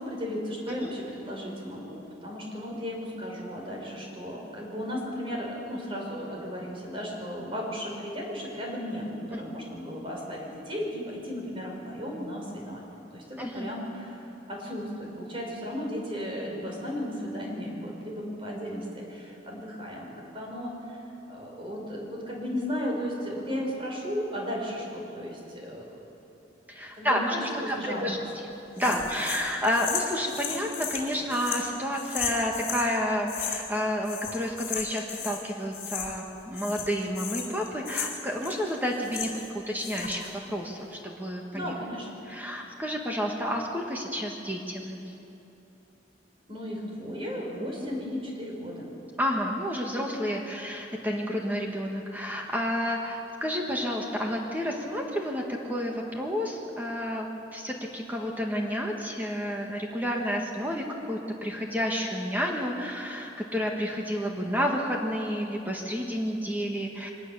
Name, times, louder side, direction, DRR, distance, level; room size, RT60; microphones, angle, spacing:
voice 1, 0.0-21.0 21.3-26.0 26.9-27.3 27.6-28.2 28.8-29.1 41.5-42.1 46.5-48.9, equal, 30° right, -1 dB, 4.9 m, -35 dB
voice 2, 13.4-13.7 26.7-28.2 28.8-41.7 42.3-45.0 47.8-47.9 49.2-55.4 55.7-67.1, equal, 10° right, 0 dB, 1.7 m, -30 dB
sound 1, 28.8-32.9 33.3-33.8 34.0-35.4 35.7-36.3 36.5-39.5 39.8-40.3, left 7 dB, 45° left, 4.2 m, -35 dB
23.5 x 19.0 x 7.0 m, 2.9 s
head